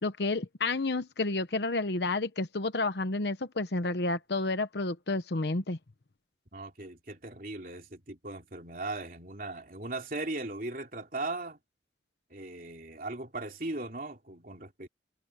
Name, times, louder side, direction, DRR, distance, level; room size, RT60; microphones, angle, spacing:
voice 1, 0.0-5.8, left 3 dB, 65° left, 1.0 m, -30 dB
voice 2, 6.5-11.6 12.3-14.9, right 2 dB, 50° right, 3.3 m, -38 dB
head